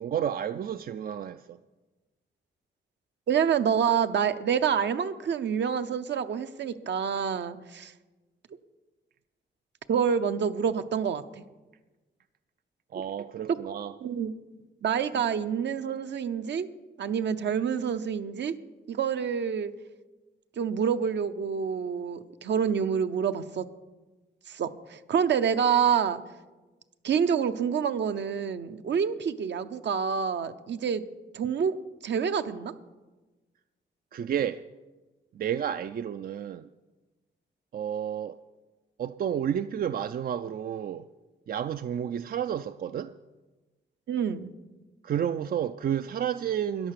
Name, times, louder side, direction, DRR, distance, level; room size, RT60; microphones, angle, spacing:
voice 1, 0.0-1.6 12.9-14.0 34.1-34.6 35.3-36.7 37.7-38.4 39.0-41.1 41.5-43.1 45.0-46.9, right 9 dB, 50° right, 0.4 m, -31 dB
voice 2, 3.3-7.9 9.9-11.4 14.0-14.3 14.8-16.7 17.0-18.5 18.9-19.7 20.6-23.7 24.5-26.2 27.0-31.0 31.3-31.8 32.0-32.7 44.1-44.5, right 7 dB, 65° right, 0.8 m, -27 dB
13.5 x 10.5 x 6.6 m
cardioid pair, 105°, 19 cm